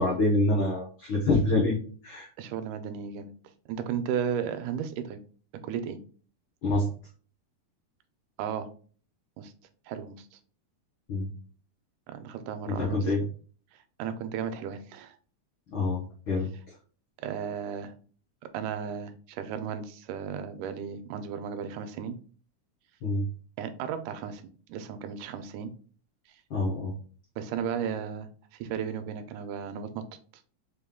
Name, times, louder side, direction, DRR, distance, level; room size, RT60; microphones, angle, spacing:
voice 1, 0.0-1.8 2.0-2.3 6.6-6.9 11.1-11.3 12.7-13.2 15.7-16.5 23.0-23.3 26.5-26.9, left 2 dB, 90° left, -3 dB, 1.1 m, -26 dB
voice 2, 2.4-3.3 3.7-5.2 5.5-6.0 8.4-8.7 9.4-9.5 9.9-10.4 12.1-13.1 13.7-15.2 17.2-18.0 18.4-22.2 23.6-25.7 27.4-30.1, right 7 dB, 85° right, 9 dB, 2.1 m, -35 dB
5.3 x 2.2 x 3.5 m, 0.42 s
omnidirectional pair, 3.5 m